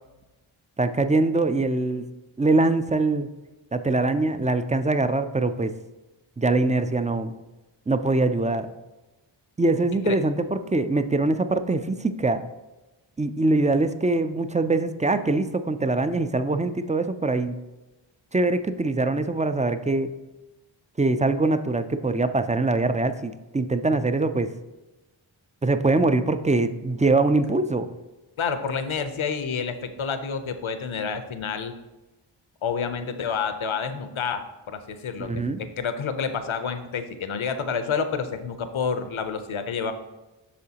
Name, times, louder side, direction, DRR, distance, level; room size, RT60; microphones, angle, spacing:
voice 1, 0.8-2.1 2.4-3.3 3.7-5.7 6.4-7.3 7.9-8.7 9.6-12.4 13.2-17.6 18.3-20.1 21.0-24.5 25.6-27.9 35.2-35.6, right 2 dB, 15° right, 10 dB, 0.3 m, -23 dB
voice 2, 28.4-31.7 32.6-35.4 35.8-39.9, left 6 dB, 75° left, 9 dB, 0.7 m, -29 dB
8.4 x 6.1 x 2.9 m, 1.1 s
wide cardioid pair, 75°, 49 cm